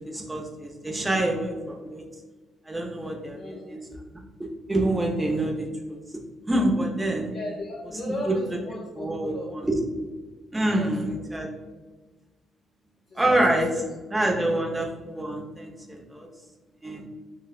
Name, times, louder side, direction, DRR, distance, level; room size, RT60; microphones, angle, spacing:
voice 1, 0.1-2.0 2.7-3.8 4.1-4.2 4.7-6.0 6.5-7.3 8.2-8.3 9.0-9.8 10.5-11.5 13.2-16.3 16.8-17.1, right 1 dB, 15° right, 0 dB, 0.5 m, -26 dB
voice 2, 3.3-3.7 7.3-9.5 10.7-11.2 13.1-13.4 13.7-13.8 14.4-14.7, left 1 dB, 45° left, -5 dB, 0.5 m, -36 dB
3.3 x 2.0 x 2.4 m, 1.3 s
cardioid pair, 90°, 0 cm